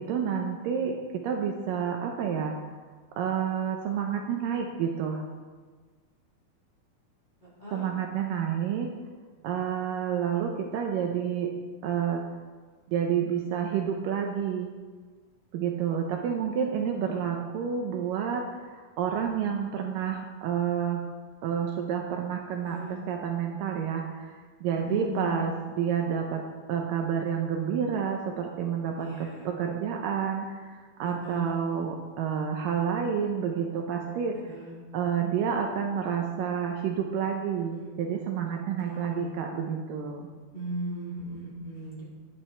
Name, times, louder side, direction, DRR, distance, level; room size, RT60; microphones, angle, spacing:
voice 1, 0.0-2.5 3.2-5.2 7.7-8.9 9.4-11.5 11.8-12.2 12.9-14.7 15.5-21.0 21.4-26.4 26.7-34.4 34.9-40.3, right 7 dB, 75° right, 2 dB, 2.3 m, -29 dB
voice 2, 7.4-7.9 22.6-22.9 24.9-25.4 29.0-29.5 31.0-31.5 34.4-34.7 37.7-37.9 38.8-39.3 40.5-42.0, right 1 dB, 15° left, -8 dB, 3.3 m, -37 dB
11.0 x 10.5 x 4.4 m, 1.5 s
omnidirectional pair, 4.3 m